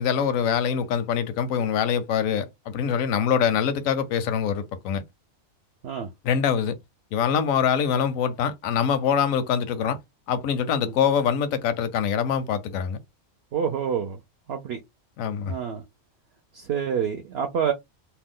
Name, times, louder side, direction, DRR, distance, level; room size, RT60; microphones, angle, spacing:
voice 1, 0.0-5.0 6.2-6.7 7.1-10.0 10.3-13.0 15.2-15.5, left 7 dB, 85° left, 1.0 m, -24 dB
voice 2, 13.5-14.2 14.5-14.8 15.4-15.8 16.5-17.7, right 7 dB, 60° right, 0.7 m, -27 dB
2.7 x 2.2 x 3.6 m
omnidirectional pair, 1.3 m